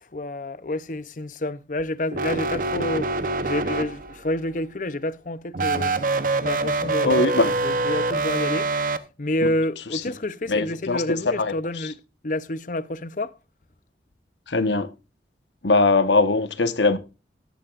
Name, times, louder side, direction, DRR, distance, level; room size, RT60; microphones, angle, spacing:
voice 1, 0.1-3.1 3.4-5.9 6.4-8.7 9.2-13.3, left 1 dB, 45° left, 0.7 m, -29 dB
sound 1, 2.1-4.3 5.5-9.0, right 3 dB, 50° right, 0.8 m, -25 dB
voice 2, 7.0-7.5 9.9-10.0 10.5-11.0 11.4-11.9 14.5-14.9 15.6-17.0, left 3 dB, 80° left, 1.3 m, -21 dB
13.5 x 11.5 x 2.5 m
head